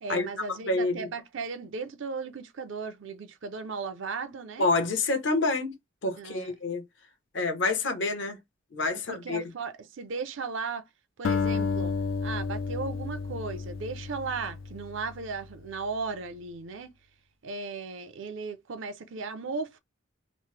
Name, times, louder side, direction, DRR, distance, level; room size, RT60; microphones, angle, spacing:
voice 1, 0.0-4.7 6.2-6.5 9.1-10.8 11.2-11.9 12.2-16.9 17.4-19.8, right 4 dB, 70° right, 0.5 m, -36 dB
voice 2, 0.7-1.1 4.6-5.7 6.0-6.8 7.3-8.4 8.7-9.4, left 3 dB, 65° left, 0.8 m, -27 dB
Acoustic guitar, 11.2-15.7, left 5 dB, 85° left, 0.4 m, -32 dB
3.0 x 2.0 x 3.2 m
head